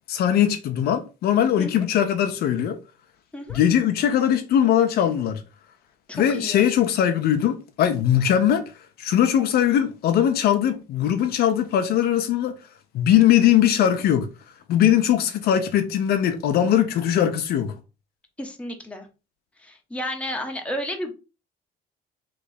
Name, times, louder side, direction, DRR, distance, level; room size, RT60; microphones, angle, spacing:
voice 1, 0.1-2.8 3.5-5.4 6.1-8.6 9.0-12.5 12.9-14.3 14.7-17.7, left 10 dB, 70° left, 0.6 m, -20 dB
voice 2, 6.1-6.6 18.4-19.1 19.6-21.1, left 1 dB, 5° left, 1.0 m, -32 dB
3.3 x 3.1 x 4.0 m
cardioid pair, 110°, 17 cm